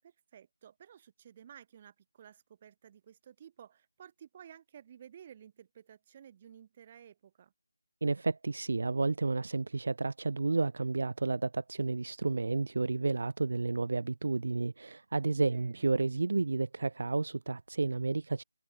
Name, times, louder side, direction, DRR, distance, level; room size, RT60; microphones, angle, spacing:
voice 1, 0.0-7.5 15.4-15.9, right 9 dB, 15° right, 6.4 m, -54 dB
voice 2, 8.0-18.4, right 3 dB, 45° right, 0.4 m, -31 dB
figure-of-eight pair, 180°, 0 cm